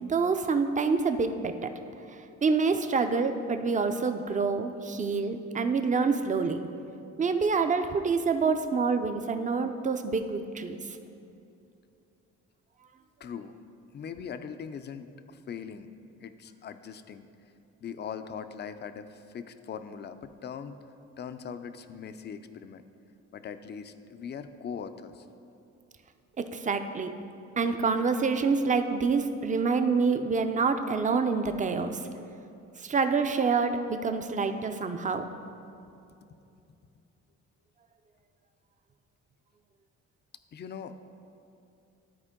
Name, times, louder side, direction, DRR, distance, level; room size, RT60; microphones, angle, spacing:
voice 1, 0.0-1.7 2.4-6.6 7.2-11.0 26.4-27.1 27.6-32.0 32.8-35.3, right 4 dB, 25° right, 8 dB, 0.5 m, -27 dB
voice 2, 13.2-13.5 13.9-15.9 16.2-17.3 17.8-20.8 21.2-22.8 23.3-25.3 36.2-36.3 40.5-41.0, left 7 dB, 35° left, 10 dB, 0.4 m, -40 dB
12.5 x 4.4 x 3.7 m, 2.7 s
cardioid pair, 90°, 30 cm